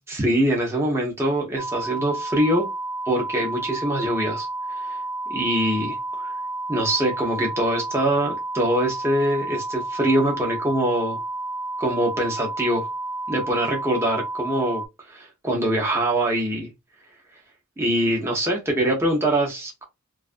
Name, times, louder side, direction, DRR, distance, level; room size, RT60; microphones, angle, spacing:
voice 1, 0.1-2.7 3.1-4.5 4.7-5.0 5.3-6.3 6.7-11.2 11.8-12.9 13.3-14.8 15.1-16.7 17.8-19.8, right 1 dB, 10° right, 0.5 m, -23 dB
sound 1, 1.6-14.9, right 2 dB, 80° left, 0.4 m, -31 dB
2.4 x 2.4 x 2.4 m
head